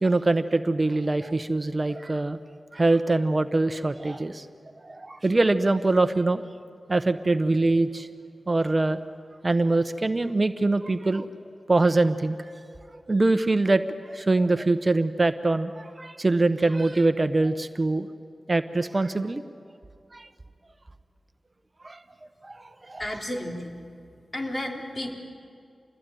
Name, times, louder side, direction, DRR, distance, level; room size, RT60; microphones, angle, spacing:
voice 1, 0.0-2.4 2.7-4.5 4.8-6.4 6.9-8.1 8.5-9.0 9.4-11.3 11.7-12.4 12.9-13.8 14.1-18.1 18.5-19.4 20.1-20.3 21.8-22.0 22.4-23.1, right 2 dB, 35° right, 10 dB, 0.9 m, -23 dB
voice 2, 23.0-23.7 24.3-25.1, left 1 dB, 40° left, 1 dB, 3.7 m, -32 dB
27.0 x 20.5 x 9.2 m, 2.4 s
cardioid pair, 65°, 0 cm